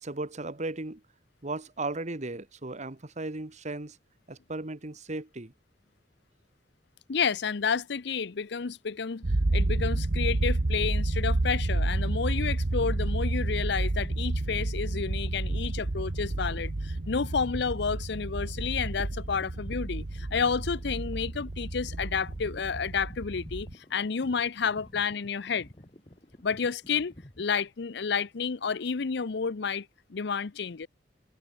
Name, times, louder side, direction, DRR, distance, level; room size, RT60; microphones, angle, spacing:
voice 1, 0.0-1.0 1.4-4.0 4.3-5.5, right 2 dB, 40° right, 1.7 m, -36 dB
voice 2, 7.1-9.2 9.5-25.7 26.4-30.9, left 6 dB, 70° left, 0.6 m, -30 dB
sound 1, 9.2-23.7, right 2 dB, 80° right, 1.1 m, -30 dB
sound 2, 11.4-27.5, left 1 dB, 30° left, 2.5 m, -52 dB
head